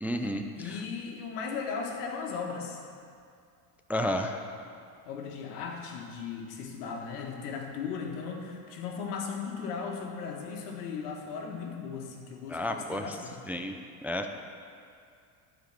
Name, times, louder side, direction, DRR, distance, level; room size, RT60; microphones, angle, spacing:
voice 1, 0.0-0.4 3.9-4.4 12.5-13.1 13.5-13.7 14.0-14.4, left 1 dB, 5° right, 5 dB, 0.3 m, -31 dB
voice 2, 0.5-2.8 5.0-13.4, left 5 dB, 90° left, 1 dB, 1.7 m, -37 dB
13.0 x 5.1 x 7.5 m, 2.4 s
supercardioid pair, 110°, 44 cm